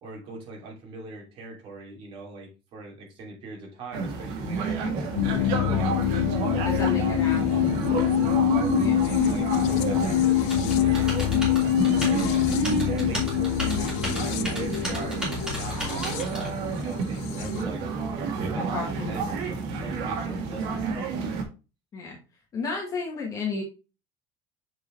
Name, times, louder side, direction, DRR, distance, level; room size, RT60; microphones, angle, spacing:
voice 1, 0.0-5.9 6.4-8.3 9.0-9.5 9.9-11.1 12.1-12.5 12.9-17.8 18.3-21.4, right 3 dB, 45° right, -1 dB, 2.8 m, -41 dB
sound 1, 3.9-21.4, right 5 dB, 70° right, 1.8 m, -30 dB
sound 2, 5.1-17.6, left 12 dB, 75° left, 0.6 m, -25 dB
voice 2, 6.6-7.7 8.7-9.0 17.2-17.3 18.7-19.1 21.9-22.2 22.5-23.6, left 4 dB, 25° left, -1 dB, 1.3 m, -32 dB
Typing, 10.5-16.5, equal, 5° right, 2.7 m, -35 dB
7.4 x 4.6 x 3.2 m, 0.31 s
cardioid pair, 175°, 12 cm